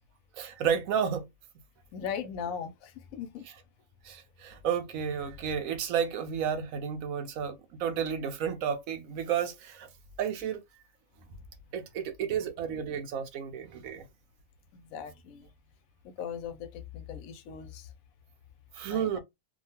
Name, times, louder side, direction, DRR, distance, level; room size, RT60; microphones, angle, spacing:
voice 1, 0.4-1.3 4.0-9.9 10.2-10.6 11.7-14.0 18.7-19.2, right 8 dB, 90° right, 1.1 m, -32 dB
voice 2, 1.9-3.5 11.3-11.4 12.3-12.4 13.6-13.8 14.7-15.5 16.0-17.9 18.9-19.2, left 7 dB, 90° left, 1.0 m, -39 dB
2.8 x 2.2 x 2.8 m
omnidirectional pair, 1.4 m